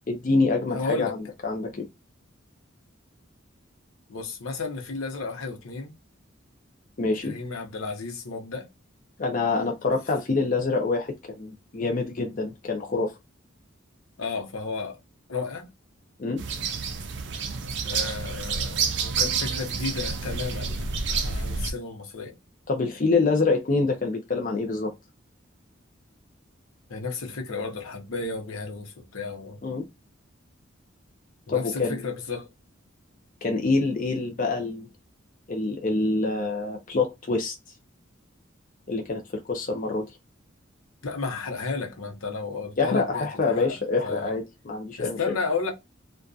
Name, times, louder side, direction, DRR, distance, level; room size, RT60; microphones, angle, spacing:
voice 1, 0.1-1.2 1.4-1.9 7.0-7.3 9.2-13.1 16.2-16.4 22.7-24.9 29.6-29.8 31.5-32.0 33.4-34.9 35.5-37.5 38.9-40.1 42.8-45.3, left 3 dB, 40° left, 0.5 m, -26 dB
voice 2, 0.7-1.1 4.1-5.9 7.2-8.7 14.2-15.0 15.3-15.7 17.8-22.4 26.9-29.6 31.5-32.5 41.0-43.8 44.0-44.3 45.0-45.7, left 4 dB, 80° left, 0.8 m, -33 dB
Early Morning Birds at a Fazenda in Goiás Brazil, 16.4-21.7, right 5 dB, 55° right, 0.4 m, -29 dB
2.6 x 2.2 x 2.3 m
head